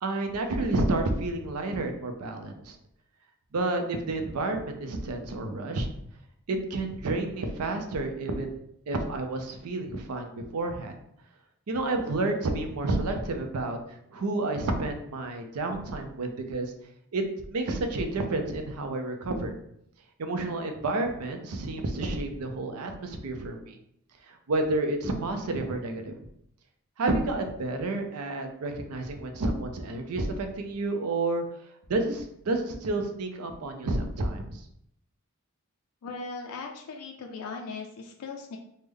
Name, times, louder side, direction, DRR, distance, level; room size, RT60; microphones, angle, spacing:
voice 1, 0.0-2.8 3.5-5.9 6.5-8.6 8.9-10.9 11.7-16.7 17.1-17.2 17.5-19.6 20.2-23.8 24.2-26.2 27.0-31.4 31.9-34.6, right 2 dB, 85° right, 5 dB, 0.5 m, -30 dB
voice 2, 36.0-38.6, left 4 dB, 90° left, 1 dB, 0.4 m, -38 dB
3.3 x 2.1 x 3.4 m, 0.73 s
head